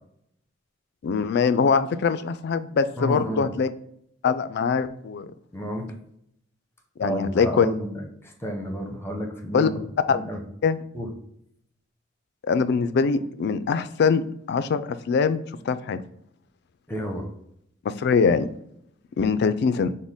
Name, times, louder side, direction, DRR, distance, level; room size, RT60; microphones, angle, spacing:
voice 1, 1.0-3.7 4.2-5.3 7.0-7.7 9.5-9.7 10.1-10.2 10.6-10.8 12.5-16.0 17.8-18.5 19.2-19.9, left 5 dB, 60° left, 13 dB, 0.3 m, -23 dB
voice 2, 3.0-3.5 5.5-6.0 7.0-9.8 10.1-10.4 10.9-11.1 16.9-17.3, equal, 10° left, 3 dB, 0.8 m, -31 dB
6.2 x 2.1 x 3.5 m, 0.73 s
head